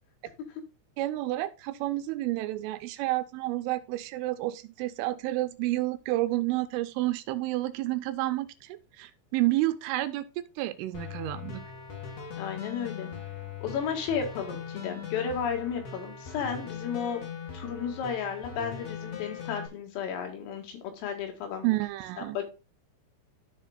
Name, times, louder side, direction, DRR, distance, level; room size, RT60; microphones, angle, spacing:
voice 1, 1.0-11.6 21.6-22.4, right 17 dB, 85° right, 3.1 m, -30 dB
sound 1, 10.9-19.7, left 6 dB, 65° left, 1.7 m, -40 dB
voice 2, 12.4-13.1 13.6-17.2 17.5-21.7 22.2-22.5, left 7 dB, 85° left, 4.3 m, -33 dB
13.5 x 4.5 x 2.4 m
omnidirectional pair, 5.8 m